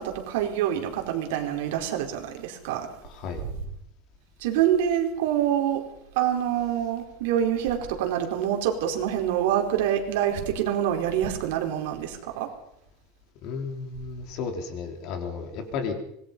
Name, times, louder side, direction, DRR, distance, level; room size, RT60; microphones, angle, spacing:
voice 1, 0.0-2.9 4.4-5.8 6.1-12.5, right 10 dB, 70° right, 3 dB, 4.6 m, -26 dB
voice 2, 3.0-3.4 13.4-15.9, left 5 dB, 45° left, 5 dB, 3.7 m, -33 dB
25.5 x 21.0 x 5.5 m, 0.78 s
supercardioid pair, 170°, 0 cm